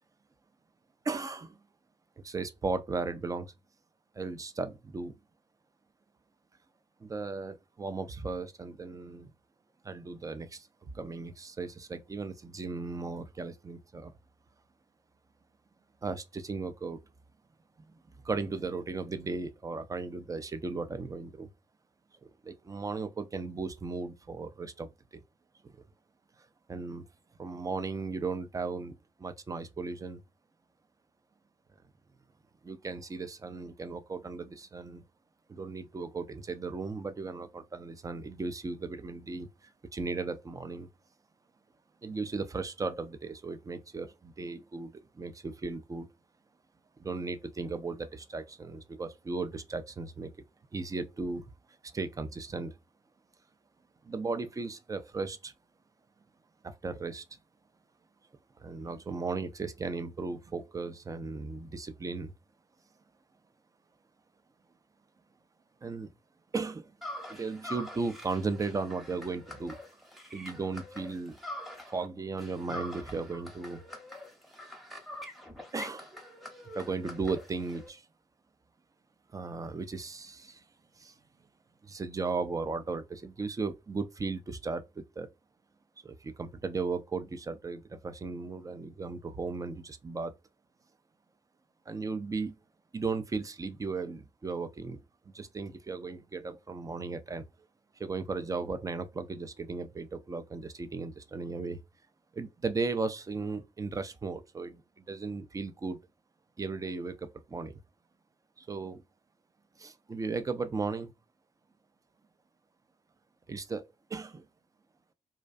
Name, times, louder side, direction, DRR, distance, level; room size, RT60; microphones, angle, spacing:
voice 1, 1.0-1.6 2.2-3.5 4.2-5.1 7.0-9.3 9.8-14.1 16.0-17.0 17.8-18.0 18.2-21.5 22.4-25.2 25.6-25.7 26.7-27.0 27.4-30.2 32.6-35.0 35.5-40.9 42.0-46.1 47.0-50.3 50.7-51.5 51.8-52.8 54.0-55.5 56.6-57.2 58.6-62.3 65.8-66.1 66.5-66.9 67.3-69.8 70.3-71.4 71.9-73.8 75.7-76.1 76.7-78.0 79.3-80.6 81.0-81.1 81.8-85.3 86.0-90.3 91.9-92.6 92.9-95.0 95.3-97.5 98.0-101.8 102.3-106.0 106.6-107.8 108.6-109.0 109.8-111.1 113.5-114.4, right 4 dB, 20° right, 0.4 m, -36 dB
sound 1, 67.0-72.1 72.4-77.9, left 1 dB, ahead, 0.9 m, -45 dB
2.4 x 2.2 x 2.5 m
hypercardioid pair, 45°, 16 cm